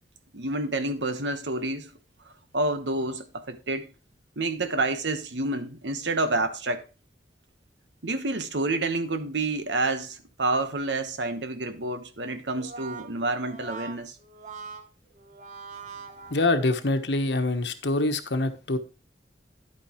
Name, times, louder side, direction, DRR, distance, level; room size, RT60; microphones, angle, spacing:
voice 1, 0.3-1.9 2.5-3.9 4.4-6.8 8.0-14.2, right 2 dB, 80° right, 1.2 m, -28 dB
Brass instrument, 12.4-16.9, right 5 dB, 40° right, 0.9 m, -43 dB
voice 2, 16.3-18.8, left 2 dB, 75° left, 1.2 m, -25 dB
11.0 x 8.8 x 3.1 m
head